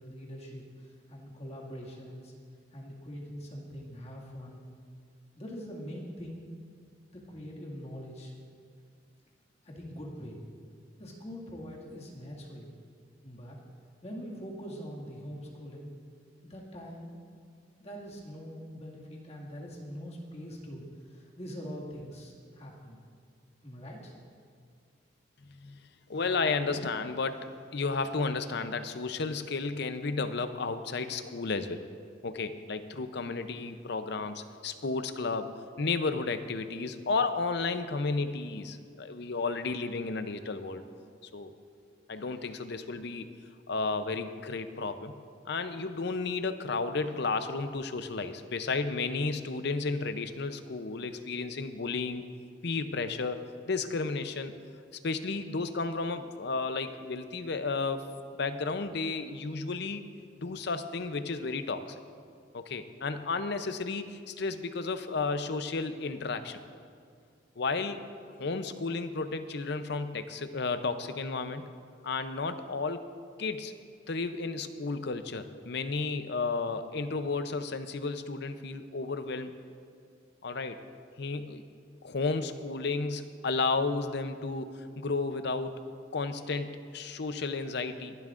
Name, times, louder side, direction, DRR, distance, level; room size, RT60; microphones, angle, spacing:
voice 1, 0.0-2.3 2.7-4.6 5.4-6.5 7.1-8.3 9.6-10.4 11.0-12.7 13.2-13.6 14.0-15.9 16.4-17.2 17.8-23.0 23.6-24.2, equal, 35° left, -4 dB, 2.1 m, -43 dB
voice 2, 25.5-25.8 26.1-31.8 32.2-35.5 35.8-40.8 41.3-41.5 42.1-43.3 43.7-45.1 45.5-52.2 52.6-53.4 53.7-54.5 55.0-58.0 58.4-60.0 60.4-62.0 62.5-66.6 67.6-68.0 68.4-71.6 72.0-73.0 73.4-73.7 74.1-79.5 80.4-80.8 81.2-81.6 82.0-85.7 86.1-88.2, left 4 dB, 60° left, 9 dB, 0.6 m, -32 dB
23.0 x 11.0 x 2.5 m, 2.2 s
head